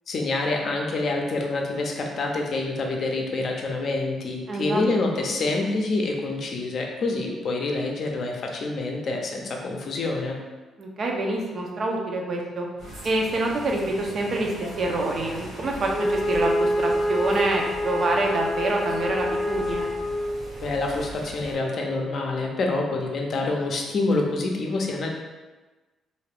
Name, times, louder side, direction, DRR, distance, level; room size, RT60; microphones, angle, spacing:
voice 1, 0.1-10.4 20.6-25.1, left 2 dB, 55° left, 1 dB, 0.5 m, -27 dB
voice 2, 4.5-4.8 5.1-5.2 10.8-12.7 13.0-19.9, right 2 dB, 50° right, 0 dB, 0.6 m, -26 dB
sound 1, 12.8-21.5, right 1 dB, 90° right, 1.2 m, -40 dB
Wind instrument woodwind instrument, 15.9-20.5, left 1 dB, 10° left, 0.5 m, -26 dB
2.6 x 2.4 x 3.3 m, 1.2 s
cardioid pair, 90°, 0 cm